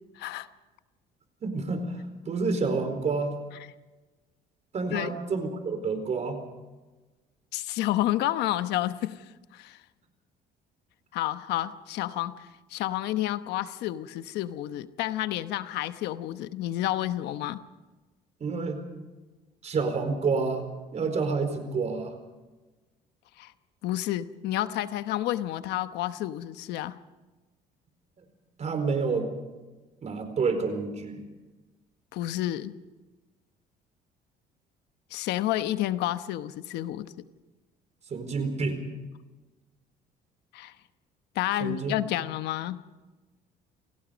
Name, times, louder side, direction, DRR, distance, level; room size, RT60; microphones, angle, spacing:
voice 1, 0.2-0.5 4.9-5.1 7.5-9.3 9.5-9.8 11.1-17.6 23.4-23.5 23.8-27.0 32.1-32.8 35.1-37.1 40.5-40.7 41.3-42.8, left 14 dB, 85° left, 12 dB, 1.0 m, -30 dB
voice 2, 1.4-2.0 2.3-3.3 4.7-6.4 18.4-18.8 19.6-20.7 20.9-22.1 28.6-29.3 30.0-31.2 38.1-38.8 41.6-41.9, right 4 dB, 40° right, 7 dB, 4.4 m, -28 dB
29.0 x 17.5 x 5.2 m, 1.2 s
cardioid pair, 110°, 17 cm